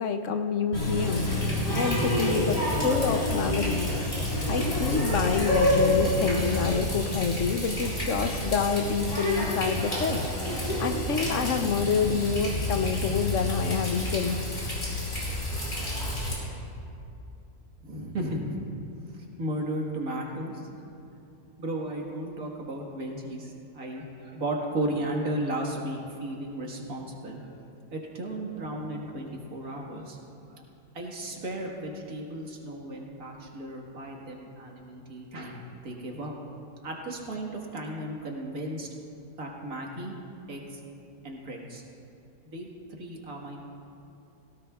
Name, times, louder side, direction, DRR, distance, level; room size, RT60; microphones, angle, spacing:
voice 1, 0.0-1.5 1.7-3.9 4.5-10.3 10.8-14.4, left 6 dB, 65° left, 7 dB, 1.0 m, -27 dB
Water tap faucet, 0.7-16.3, left 1 dB, 45° left, 4.1 m, -28 dB
voice 2, 17.8-18.6 19.1-20.7 21.6-27.5 27.9-30.2 30.5-30.6 30.9-35.6 35.8-36.3 36.8-38.9 39.4-40.2 40.5-40.8 41.2-41.8 42.4-43.6, right 1 dB, 85° right, -1 dB, 2.1 m, -35 dB
17.5 x 17.0 x 2.4 m, 2.7 s
omnidirectional pair, 1.5 m